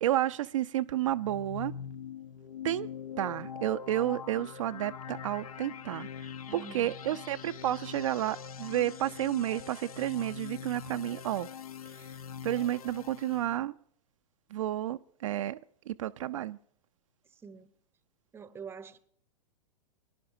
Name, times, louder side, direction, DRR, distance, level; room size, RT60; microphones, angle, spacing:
voice 1, 0.0-1.7 2.6-2.9 3.2-11.5 11.9-12.1 12.4-13.7 14.5-15.6 15.9-16.6, right 13 dB, 60° right, 0.4 m, -31 dB
sound 1, 1.0-13.6, left 7 dB, 70° left, 0.6 m, -43 dB
voice 2, 6.5-7.0 17.4-17.7 18.3-19.0, right 5 dB, 10° right, 0.7 m, -45 dB
23.0 x 10.5 x 2.6 m
figure-of-eight pair, 100°, 19 cm